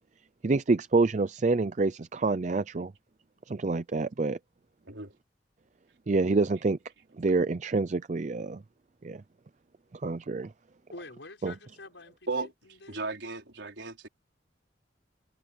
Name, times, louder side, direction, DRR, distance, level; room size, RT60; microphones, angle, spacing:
voice 1, 0.4-2.9 3.5-4.4 6.1-6.8 7.2-8.6 9.0-9.2 10.0-10.5 11.4-11.5, right 3 dB, 40° right, 0.5 m, -27 dB
voice 2, 10.9-13.1, left 2 dB, 85° left, 6.0 m, -47 dB
voice 3, 12.9-14.1, right 3 dB, 85° right, 4.3 m, -35 dB
head